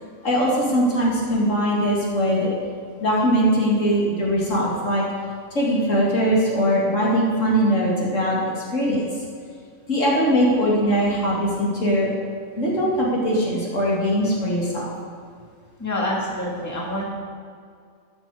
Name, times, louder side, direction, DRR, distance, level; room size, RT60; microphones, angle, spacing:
voice 1, 0.2-2.5 3.0-5.0 5.5-9.0 9.9-12.1 12.6-14.9, equal, 65° left, -4 dB, 2.5 m, -21 dB
voice 2, 15.8-17.0, left 1 dB, 10° left, -4 dB, 1.8 m, -26 dB
12.5 x 7.1 x 4.8 m, 2.2 s
omnidirectional pair, 1.4 m